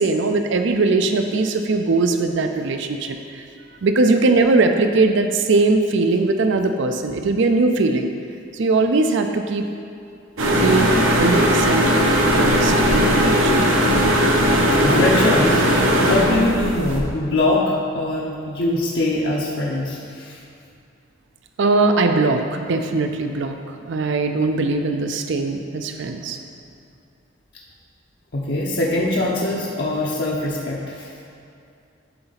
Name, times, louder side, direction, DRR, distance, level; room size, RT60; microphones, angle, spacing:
voice 1, 0.0-3.4 3.8-8.1 8.5-9.6 10.6-11.8 12.3-13.6 21.6-26.4, right 3 dB, 65° right, 6 dB, 0.5 m, -20 dB
sound 1, 10.4-17.0, equal, 80° right, 1.0 m, -18 dB
voice 2, 14.8-20.4 26.2-26.3 28.3-31.1, left 2 dB, 60° left, -5 dB, 0.8 m, -23 dB
11.0 x 3.9 x 4.0 m, 2.5 s
head